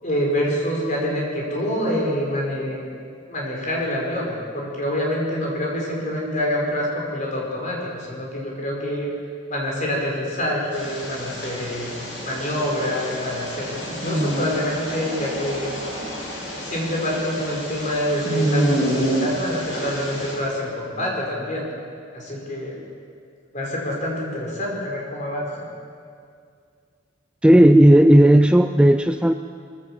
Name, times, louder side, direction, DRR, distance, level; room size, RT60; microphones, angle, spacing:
voice 1, 0.0-2.8 3.3-9.1 9.5-12.0 12.2-15.7 16.6-21.7 22.1-22.8 23.5-25.7, equal, 40° left, -2 dB, 5.2 m, -26 dB
sound 1, 10.7-20.3, right 1 dB, 70° left, 7.2 m, -28 dB
voice 2, 27.4-29.3, right 1 dB, 5° right, 8 dB, 0.4 m, -13 dB
22.5 x 15.0 x 7.6 m, 2.3 s
head